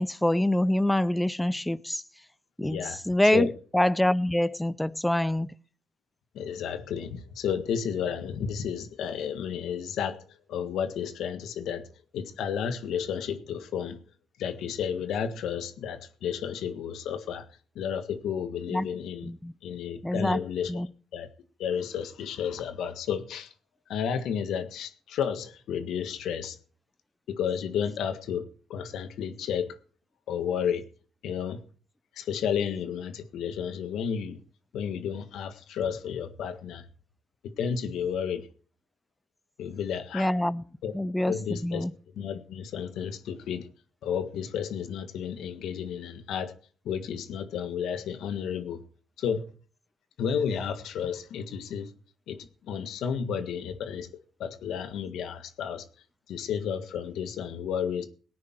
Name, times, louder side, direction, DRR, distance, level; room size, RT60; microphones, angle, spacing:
voice 1, 0.0-2.0 2.6-2.8 3.1-5.5 18.7-18.9 19.3-19.5 20.0-20.4 20.7-20.9 40.1-40.6 40.9-41.3 41.6-41.9, left 1 dB, 5° left, 0.5 m, -25 dB
voice 2, 2.6-3.0 3.3-3.5 6.3-10.2 10.5-11.8 12.1-14.0 14.4-17.4 17.7-19.3 19.6-20.8 21.1-21.3 21.6-23.5 23.9-26.6 27.3-29.8 30.3-30.8 31.2-31.6 32.2-34.4 34.7-36.8 37.6-38.5 39.6-40.3 40.8-40.9 41.2-41.8 42.1-43.7 44.0-46.5 46.8-48.8 49.2-49.5 50.2-51.9 52.3-54.1 54.4-55.8 56.3-58.1, left 7 dB, 80° left, 1.7 m, -32 dB
18.5 x 9.6 x 4.6 m
cardioid pair, 105°, 0 cm